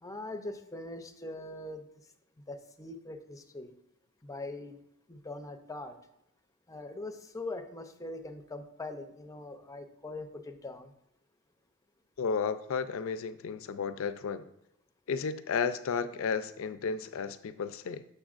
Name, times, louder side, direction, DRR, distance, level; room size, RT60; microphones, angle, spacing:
voice 1, 0.0-1.8 2.5-3.7 4.2-4.8 5.1-5.9 6.7-10.9, left 2 dB, 15° left, 7 dB, 0.5 m, -42 dB
voice 2, 12.2-14.4 15.1-18.0, left 5 dB, 65° left, 12 dB, 0.4 m, -33 dB
7.0 x 6.7 x 2.4 m, 0.82 s
head